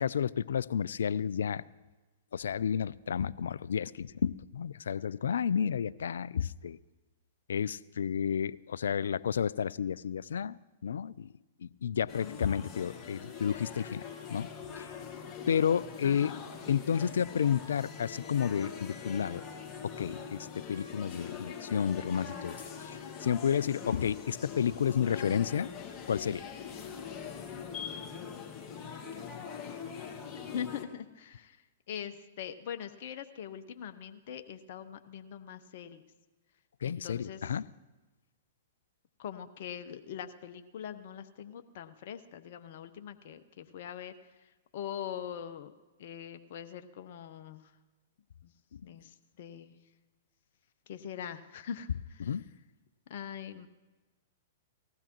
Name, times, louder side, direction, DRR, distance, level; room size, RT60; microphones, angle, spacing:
voice 1, 0.0-1.6 2.3-6.8 7.5-10.6 10.8-11.3 11.8-14.0 14.3-14.5 14.8-14.9 15.5-16.3 16.7-19.4 19.8-25.7 26.1-26.5 36.8-37.6 52.2-52.4, left 8 dB, 75° left, 19 dB, 0.3 m, -31 dB
sound 1, 12.1-30.8, left 6 dB, 20° left, 1.8 m, -43 dB
voice 2, 12.2-12.7 16.0-16.4 28.7-30.2 30.5-36.0 36.8-37.6 39.2-45.7 46.0-47.7 48.4-48.5 48.8-49.8 50.9-52.5 53.1-53.7, left 9 dB, 60° left, 8 dB, 0.8 m, -43 dB
19.0 x 15.5 x 3.0 m, 1.2 s
hypercardioid pair, 115°, 0 cm